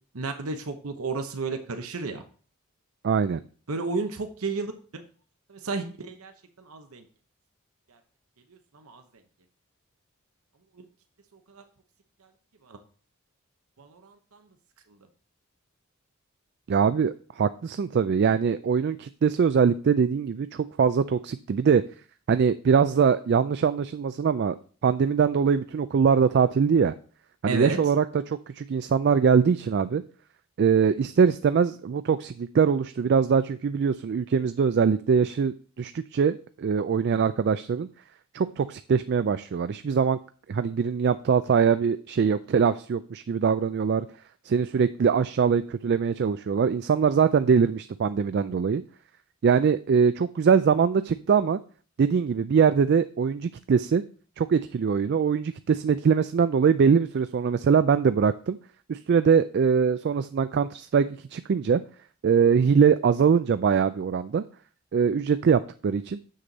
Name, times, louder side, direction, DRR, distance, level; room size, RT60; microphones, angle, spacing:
voice 1, 0.1-2.2 3.7-5.0 5.5-6.3 6.6-7.0 7.9-8.0 8.5-9.0 10.8-10.9 11.5-11.6 12.6-12.8 13.8-14.4 27.5-27.8, right 3 dB, 80° right, 7 dB, 0.9 m, -32 dB
voice 2, 3.0-3.4 16.7-21.8 22.3-24.6 24.8-26.9 27.4-30.0 30.6-37.9 38.3-40.2 40.5-44.1 44.4-48.8 49.4-51.6 52.0-54.0 54.4-58.6 58.9-61.8 62.2-64.4 64.9-66.2, right 6 dB, 50° right, 12 dB, 0.3 m, -22 dB
7.6 x 6.5 x 4.0 m, 0.41 s
head